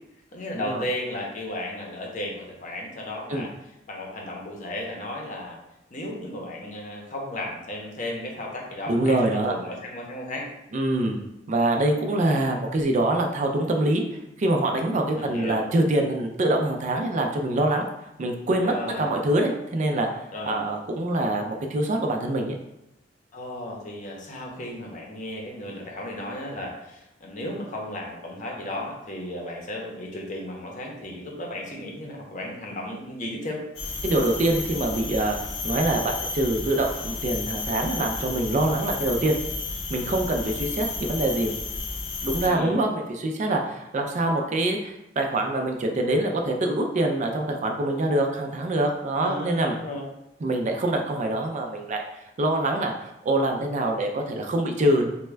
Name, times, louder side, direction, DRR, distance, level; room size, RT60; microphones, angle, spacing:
voice 1, 0.3-3.5 3.9-5.6 5.9-10.5 15.1-15.6 18.6-19.1 20.3-20.6 23.3-33.6 42.4-42.8 49.1-50.0, left 1 dB, 45° left, 0 dB, 0.7 m, -34 dB
voice 2, 8.9-9.5 10.7-11.2 11.5-14.0 14.4-17.9 18.2-20.1 20.5-22.6 34.0-35.4 35.6-39.4 39.9-41.5 42.2-49.8 50.4-52.0 52.4-55.1, right 1 dB, 40° right, 3 dB, 0.4 m, -24 dB
sound 1, 33.8-42.5, left 3 dB, 90° left, 0.6 m, -32 dB
3.4 x 2.1 x 3.2 m, 0.89 s
head